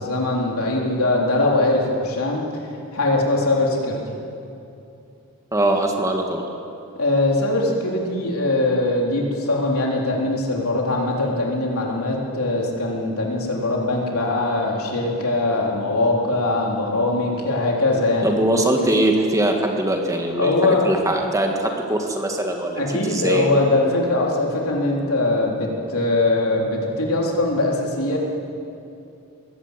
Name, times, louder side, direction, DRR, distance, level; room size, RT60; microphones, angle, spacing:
voice 1, 0.0-2.4 2.9-4.0 7.0-18.6 20.4-20.9 22.8-28.2, left 2 dB, 70° left, -1 dB, 4.0 m, -21 dB
voice 2, 5.5-6.4 18.2-20.6 20.8-23.5, right 1 dB, 15° right, 2 dB, 1.8 m, -21 dB
21.5 x 16.5 x 8.4 m, 2.7 s
head